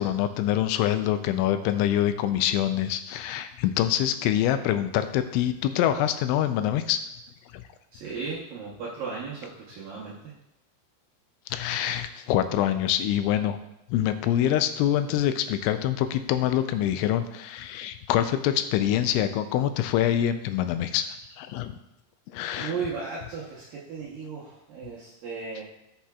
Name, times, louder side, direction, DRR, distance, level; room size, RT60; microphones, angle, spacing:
voice 1, 0.0-7.0 7.5-7.6 11.5-13.6 13.9-21.1 21.4-21.7 22.3-22.8, left 11 dB, 85° left, 9 dB, 2.9 m, -25 dB
voice 2, 7.9-10.3 22.6-25.6, right 5 dB, 75° right, -5 dB, 2.1 m, -35 dB
16.0 x 5.8 x 2.3 m, 0.85 s
omnidirectional pair, 5.4 m